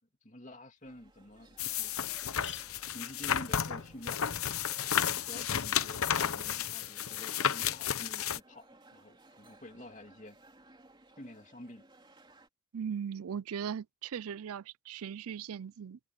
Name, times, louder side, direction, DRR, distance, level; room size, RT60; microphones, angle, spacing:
voice 1, 0.2-1.9 2.4-4.2 5.1-10.4 11.2-11.8, left 1 dB, 35° left, 2.6 m, -49 dB
sound 1, 0.8-0.9 1.4-1.5 1.7-1.8 2.1-5.9, left 10 dB, 50° left, 3.1 m, -53 dB
sound 2, 0.8-12.5, right 2 dB, 20° right, 3.3 m, -59 dB
sound 3, 1.6-8.4, left 8 dB, 80° left, 0.9 m, -32 dB
voice 2, 12.7-16.0, right 7 dB, 85° right, 0.4 m, -38 dB
head